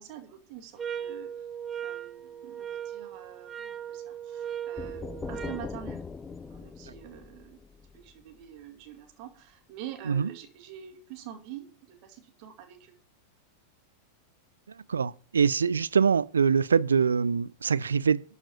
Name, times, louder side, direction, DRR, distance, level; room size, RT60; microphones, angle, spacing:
voice 1, 0.0-1.4 1.8-6.0 6.5-7.6 7.9-12.9, right 10 dB, 45° right, 2.2 m, -46 dB
sound 1, 0.8-5.7, right 9 dB, 20° right, 0.9 m, -38 dB
sound 2, 4.8-8.5, left 4 dB, 15° left, 0.5 m, -41 dB
voice 2, 14.9-18.2, right 6 dB, 70° right, 0.4 m, -24 dB
13.0 x 4.9 x 6.7 m
figure-of-eight pair, 90°, 0 cm